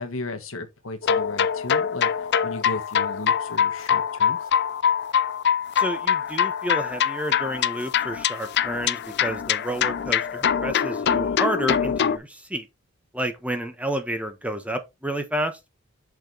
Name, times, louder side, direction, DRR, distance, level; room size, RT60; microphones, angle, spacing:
voice 1, 0.0-2.1 2.4-4.4, left 2 dB, 75° left, 1.4 m, -35 dB
sound 1, 1.0-12.2, left 8 dB, 55° left, 0.5 m, -24 dB
voice 2, 5.7-12.7 13.1-15.6, equal, 5° right, 1.0 m, -30 dB
6.6 x 5.0 x 3.9 m
head